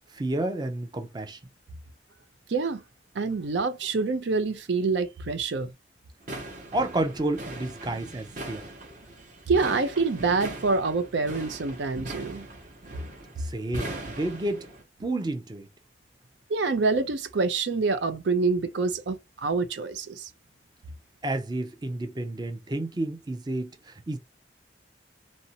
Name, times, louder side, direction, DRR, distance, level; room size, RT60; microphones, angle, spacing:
voice 1, 0.1-1.4 6.7-8.7 13.4-14.7 15.0-15.7 21.2-24.2, right 1 dB, 25° right, 0.5 m, -30 dB
voice 2, 2.5-2.8 3.2-5.7 9.5-12.4 16.5-20.3, right 4 dB, 85° right, 0.5 m, -26 dB
sound 1, 6.2-14.8, right 1 dB, 45° right, 0.9 m, -40 dB
2.5 x 2.1 x 2.7 m
head